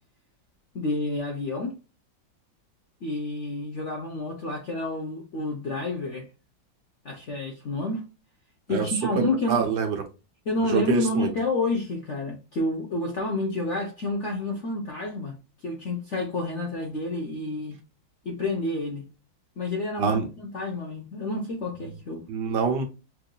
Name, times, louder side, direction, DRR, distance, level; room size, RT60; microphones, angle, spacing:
voice 1, 0.7-1.7 3.0-6.3 7.0-8.0 8.7-9.6 10.5-15.4 15.6-17.8 18.2-19.0 19.6-20.2 20.5-22.2, left 2 dB, 55° left, 0.8 m, -29 dB
voice 2, 9.2-10.0 10.7-11.3 20.0-20.3 22.3-22.8, right 6 dB, 65° right, 1.4 m, -25 dB
5.7 x 2.7 x 2.2 m
omnidirectional pair, 2.1 m